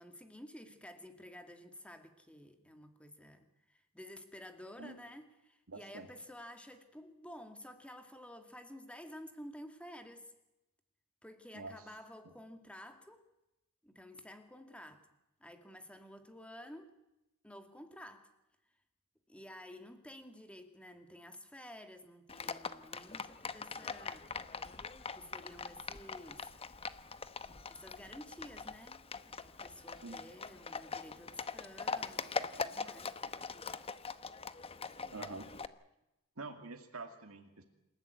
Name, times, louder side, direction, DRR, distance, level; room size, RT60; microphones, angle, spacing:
voice 1, 0.0-10.3 11.2-13.2 13.8-15.1 15.4-17.0 17.4-18.3 19.3-24.3 25.1-26.5 27.7-33.2, left 1 dB, 5° left, 6 dB, 2.3 m, -52 dB
voice 2, 5.7-6.1 11.5-11.7 30.0-30.2 35.1-35.5 36.4-37.6, right 3 dB, 75° right, 4 dB, 2.4 m, -46 dB
Livestock farm animals working animals, 22.3-35.7, left 5 dB, 25° left, 0.9 m, -42 dB
27.5 x 15.0 x 9.5 m, 0.93 s
head